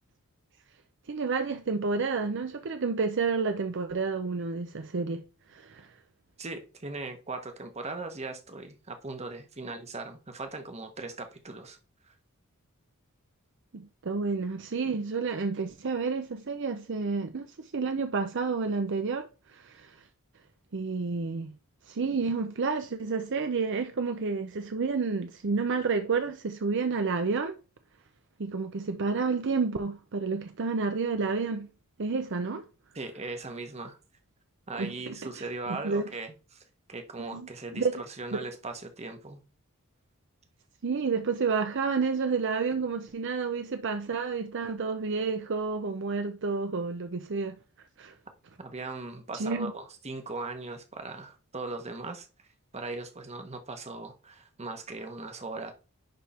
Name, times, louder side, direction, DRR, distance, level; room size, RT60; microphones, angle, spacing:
voice 1, 1.1-5.2 5.5-5.9 13.7-20.0 20.7-21.5 21.9-27.6 28.4-31.7 32.0-32.6 34.7-35.1 35.7-36.0 37.3-37.5 37.7-37.9 38.3-38.4 40.8-47.6 48.0-48.1 49.3-49.7, right 4 dB, 55° right, 0.6 m, -30 dB
voice 2, 6.4-11.8 12.1-12.2 32.9-34.0 34.7-39.4 48.6-52.3 52.7-55.7, right 3 dB, 30° right, 1.1 m, -39 dB
10.5 x 3.6 x 4.3 m
head